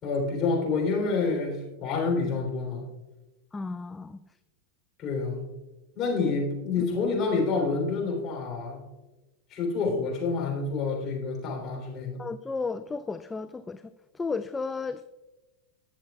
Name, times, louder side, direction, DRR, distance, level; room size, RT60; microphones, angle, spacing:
voice 1, 0.0-2.8 5.0-5.5 5.9-8.8 9.5-12.2, left 4 dB, 30° left, -2 dB, 3.5 m, -28 dB
voice 2, 3.5-4.2 12.2-13.8 14.1-15.1, left 4 dB, 10° left, 11 dB, 0.3 m, -33 dB
19.5 x 7.2 x 2.4 m, 1.1 s
figure-of-eight pair, 90°, 0 cm